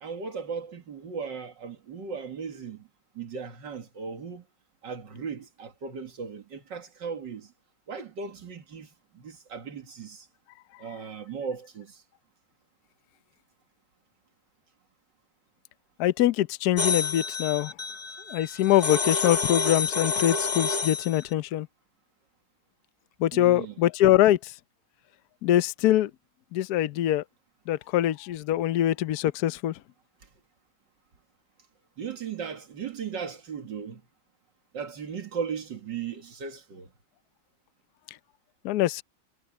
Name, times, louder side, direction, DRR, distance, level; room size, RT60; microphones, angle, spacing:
voice 1, 0.0-2.9 3.1-4.4 4.8-7.5 7.9-10.3 10.8-12.0 23.3-23.8 32.0-34.0 34.7-36.9, right 6 dB, 70° right, 2.5 m, -37 dB
voice 2, 16.0-17.7 18.3-21.7 23.2-24.5 25.4-26.1 26.5-27.2 27.7-29.7 38.6-39.0, left 13 dB, 65° left, 1.1 m, -23 dB
sound 1, 16.8-21.2, left 4 dB, 25° left, 1.2 m, -29 dB
omnidirectional pair, 2.0 m